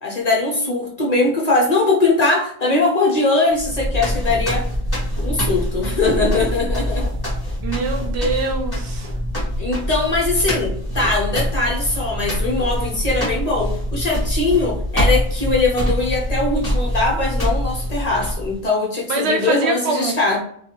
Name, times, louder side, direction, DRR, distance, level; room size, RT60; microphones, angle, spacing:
voice 1, 0.0-4.6 5.2-7.1 9.6-20.4, left 3 dB, 40° left, -3 dB, 0.8 m, -21 dB
sound 1, 3.5-18.7, equal, 20° left, 1.2 m, -24 dB
voice 2, 7.6-9.1 19.1-20.2, right 3 dB, 75° right, 3 dB, 0.9 m, -23 dB
2.7 x 2.3 x 2.8 m, 0.63 s
omnidirectional pair, 1.2 m